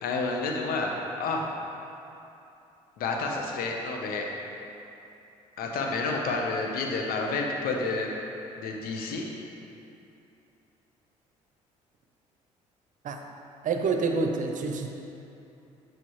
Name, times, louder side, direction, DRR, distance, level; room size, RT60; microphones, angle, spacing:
voice 1, 0.0-1.5 3.0-4.3 5.6-8.2 8.6-9.3, left 3 dB, 65° left, 1 dB, 1.0 m, -30 dB
voice 2, 13.6-14.9, right 4 dB, 50° right, 4 dB, 0.8 m, -27 dB
8.5 x 6.2 x 3.2 m, 2.8 s
hypercardioid pair, 55°, 16 cm